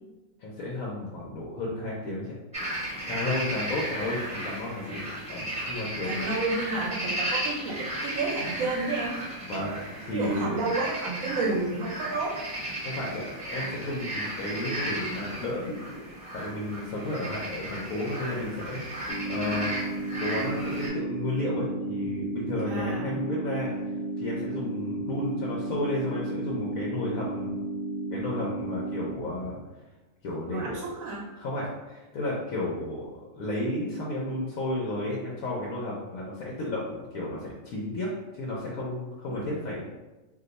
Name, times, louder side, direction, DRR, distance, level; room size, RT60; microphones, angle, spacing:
voice 1, 0.4-2.3 3.1-5.0 5.3-6.1 9.4-10.6 12.8-16.1 16.3-19.8 20.2-23.7 24.2-27.6 28.1-29.6 30.2-30.8 31.4-39.9, left 1 dB, 85° left, -4 dB, 1.1 m, -32 dB
sound 1, 2.5-20.9, right 1 dB, 5° right, 1.2 m, -35 dB
voice 2, 6.0-9.2 9.5-12.4 22.7-23.2 30.5-31.3 39.3-39.5, right 3 dB, 80° right, -4 dB, 1.0 m, -31 dB
sound 2, 19.1-29.1, right 2 dB, 50° left, 1.0 m, -33 dB
2.7 x 2.3 x 3.9 m, 1.1 s
omnidirectional pair, 1.4 m